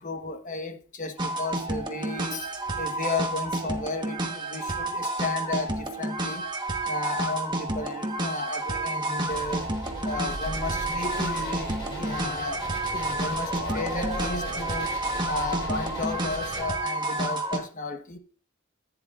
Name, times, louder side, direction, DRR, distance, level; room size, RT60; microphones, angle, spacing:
voice 1, 0.0-6.5 6.9-15.0 15.3-18.2, left 3 dB, 40° left, 1.1 m, -34 dB
sound 1, 1.2-17.6, right 2 dB, 20° right, 1.2 m, -30 dB
sound 2, 9.2-16.6, right 1 dB, 20° left, 3.8 m, -38 dB
sound 3, 11.1-16.6, left 1 dB, 60° left, 4.9 m, -42 dB
14.5 x 9.9 x 2.5 m
head